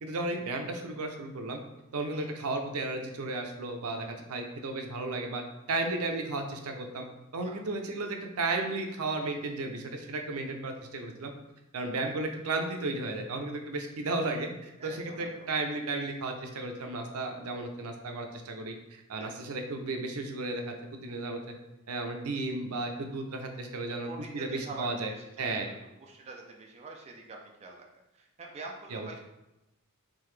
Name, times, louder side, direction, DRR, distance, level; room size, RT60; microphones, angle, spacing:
voice 1, 0.0-1.6 1.9-5.4 5.7-7.1 7.3-11.3 11.7-21.5 21.9-24.1 24.3-25.1 25.4-25.7 28.9-29.1, right 2 dB, 80° right, 4 dB, 0.6 m, -34 dB
voice 2, 14.8-15.3 19.2-19.3 24.1-25.7 26.0-27.9 28.1-29.2, right 3 dB, 30° right, 0 dB, 0.3 m, -46 dB
3.8 x 2.8 x 3.2 m, 0.95 s
head